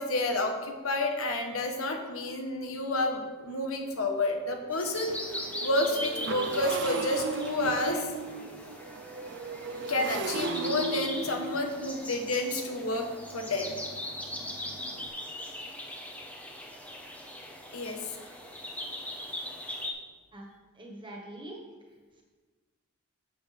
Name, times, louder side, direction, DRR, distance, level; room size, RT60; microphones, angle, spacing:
voice 1, 0.0-8.1 9.9-13.8 17.7-18.3, left 2 dB, 85° left, 3 dB, 1.3 m, -30 dB
Motorcycle, 2.5-2.6 3.0-3.2 3.5-15.1, right 3 dB, 60° right, 0.6 m, -38 dB
sound 1, 4.7-19.9, left 1 dB, 5° left, 0.9 m, -40 dB
voice 2, 20.8-21.6, right 1 dB, 25° right, 0 dB, 1.6 m, -43 dB
11.5 x 7.0 x 3.5 m, 1.3 s
head